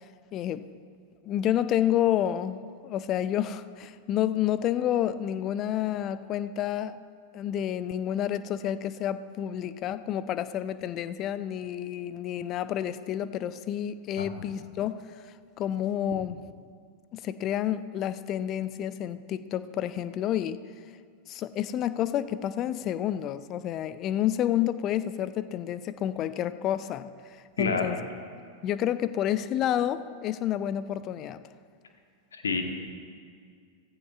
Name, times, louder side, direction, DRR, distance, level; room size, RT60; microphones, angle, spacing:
voice 1, 0.3-0.7 1.2-7.0 7.3-15.1 15.6-16.4 17.1-20.6 21.3-27.1 27.6-28.0 28.6-31.4, left 11 dB, 35° left, 14 dB, 0.4 m, -29 dB
voice 2, 27.6-27.9 32.4-32.6, left 4 dB, 70° left, 4 dB, 1.2 m, -28 dB
16.5 x 15.0 x 2.4 m, 2.1 s
figure-of-eight pair, 90°, 0 cm